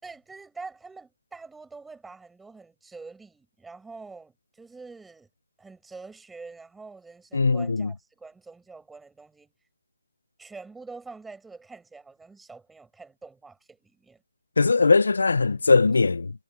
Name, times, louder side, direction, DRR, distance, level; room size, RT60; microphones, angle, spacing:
voice 1, 0.0-5.3 5.6-9.5 10.4-14.2, right 4 dB, 5° right, 7.1 m, -45 dB
voice 2, 7.3-7.9 14.6-16.3, left 4 dB, 80° left, 0.6 m, -20 dB
hypercardioid pair, 175°, 0 cm